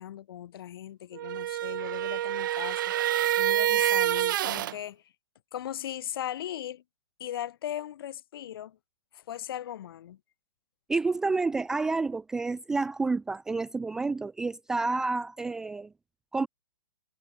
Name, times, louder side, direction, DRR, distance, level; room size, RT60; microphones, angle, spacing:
voice 1, 0.0-2.9 3.4-5.0 5.5-6.8 7.2-8.8 9.1-10.2, left 11 dB, 50° left, 2.7 m, -38 dB
sound 1, 1.1-4.8, right 13 dB, 45° right, 1.1 m, -27 dB
voice 2, 10.9-15.9 16.3-16.5, right 3 dB, 5° right, 0.6 m, -29 dB
hypercardioid pair, 175°, 16 cm